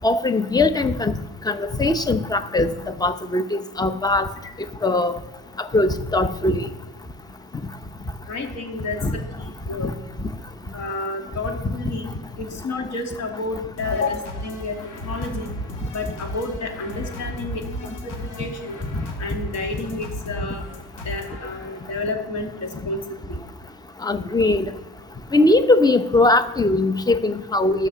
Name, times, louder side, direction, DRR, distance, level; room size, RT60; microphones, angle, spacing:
voice 1, 0.0-1.2 1.5-2.7 3.0-4.3 4.8-5.1 5.6-6.7 9.0-9.1 9.8-9.9 18.9-19.0 24.0-24.7 25.3-27.9, left 2 dB, 15° left, 10 dB, 0.8 m, -20 dB
voice 2, 8.3-10.0 10.7-14.8 15.0-15.5 15.9-18.8 19.2-20.6 21.0-23.4, left 3 dB, 60° left, 2 dB, 2.4 m, -30 dB
sound 1, 13.8-22.0, equal, 80° left, 2.5 m, -35 dB
13.5 x 6.1 x 7.0 m, 1.1 s
cardioid pair, 90°, 30 cm